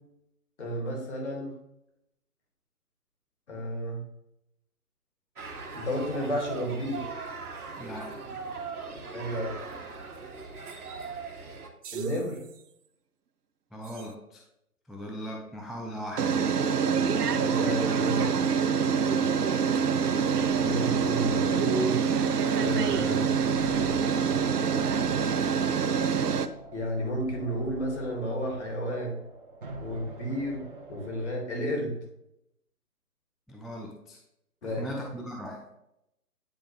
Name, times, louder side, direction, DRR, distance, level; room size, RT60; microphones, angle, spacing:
voice 1, 0.6-1.5 3.5-4.0 5.7-7.0 9.1-9.6 11.9-12.4 17.2-18.5 20.6-22.0 22.6-23.3 26.7-29.2 29.8-30.6 30.9-32.0 34.6-34.9, equal, 45° left, 0 dB, 2.3 m, -32 dB
sound 1, 5.4-11.7, right 4 dB, 70° right, 1.4 m, -40 dB
voice 2, 7.8-8.3 13.7-14.4 14.9-16.4 33.5-34.2 34.6-35.8, equal, ahead, 0 dB, 0.3 m, -39 dB
sound 2, 11.8-12.3 14.0-14.1 16.2-26.5, right 6 dB, 85° right, 0.7 m, -26 dB
sound 3, 19.7-31.4, right 1 dB, 35° right, 1.0 m, -44 dB
9.6 x 3.5 x 3.2 m, 0.82 s
hypercardioid pair, 165°, 46 cm